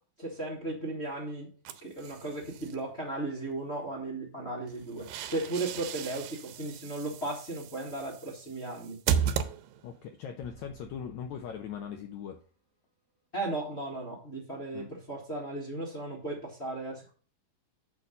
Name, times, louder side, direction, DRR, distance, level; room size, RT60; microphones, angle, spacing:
voice 1, 0.2-1.5 1.8-9.0 13.3-17.1, right 2 dB, 30° left, -3 dB, 1.3 m, -36 dB
sound 1, 1.6-2.8 4.7-10.1, right 8 dB, 85° right, 2.4 m, -35 dB
voice 2, 9.8-12.4 14.7-14.9, left 8 dB, 80° left, 5 dB, 1.7 m, -40 dB
sound 2, 10.4-12.5, right 5 dB, 20° right, 1.5 m, -55 dB
6.8 x 6.0 x 5.4 m, 0.40 s
omnidirectional pair, 4.1 m